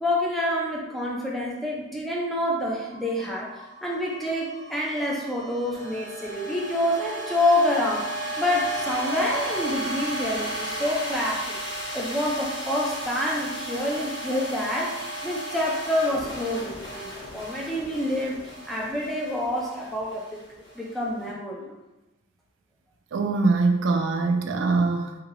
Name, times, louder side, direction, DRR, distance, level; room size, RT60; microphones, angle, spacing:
voice 1, 0.0-8.1 8.4-11.6 11.9-18.4 18.7-20.3 20.7-21.7, left 1 dB, ahead, -4 dB, 0.6 m, -27 dB
sound 1, 2.9-21.2, right 1 dB, 65° left, 1.1 m, -35 dB
voice 2, 23.1-25.1, right 3 dB, 70° right, 4 dB, 0.4 m, -23 dB
2.9 x 2.8 x 3.9 m, 0.98 s
head